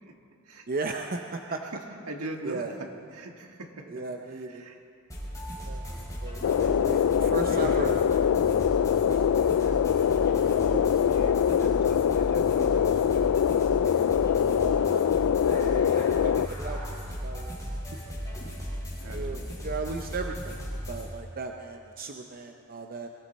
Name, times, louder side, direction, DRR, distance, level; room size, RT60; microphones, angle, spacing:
voice 1, 0.7-1.6 2.4-2.7 3.9-4.6 5.7-5.8 6.2-8.0 9.1-9.5 10.7-10.8 14.4-15.1 15.5-17.6 17.9-18.0 19.1-20.6 20.9-23.1, right 3 dB, 40° right, 4 dB, 0.7 m, -36 dB
voice 2, 1.5-1.8 2.1-4.8 9.5-9.8 11.1-13.1 19.0-19.5, right 2 dB, 70° right, 3 dB, 1.6 m, -41 dB
sound 1, 5.1-21.1, equal, 15° left, 5.2 m, -36 dB
sound 2, 6.4-16.5, left 8 dB, 65° left, 0.3 m, -23 dB
22.5 x 15.5 x 4.2 m, 2.5 s
head